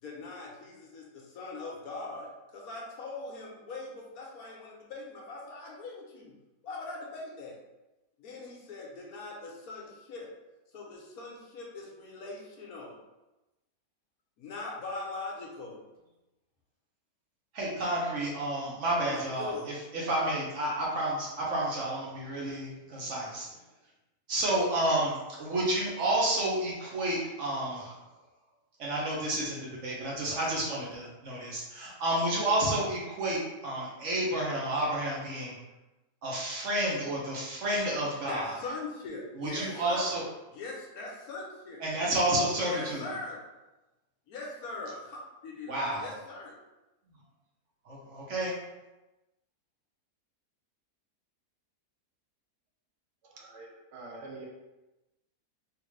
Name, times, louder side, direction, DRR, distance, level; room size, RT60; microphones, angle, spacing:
voice 1, 0.0-6.3 6.6-7.5 8.2-10.3 10.7-12.9 14.4-15.8 19.0-19.6 38.3-40.1 40.5-41.8 42.6-43.4 44.3-46.5, left 3 dB, 70° left, -2 dB, 1.1 m, -41 dB
voice 2, 17.5-23.5 24.3-28.0 28.8-35.6 36.2-38.6 39.4-40.2 41.8-43.0 45.7-46.1 47.9-48.5, right 1 dB, 55° right, -4 dB, 1.0 m, -30 dB
voice 3, 53.2-54.5, right 3 dB, 85° right, -1 dB, 1.3 m, -46 dB
3.5 x 2.5 x 3.1 m, 1.0 s
omnidirectional pair, 1.7 m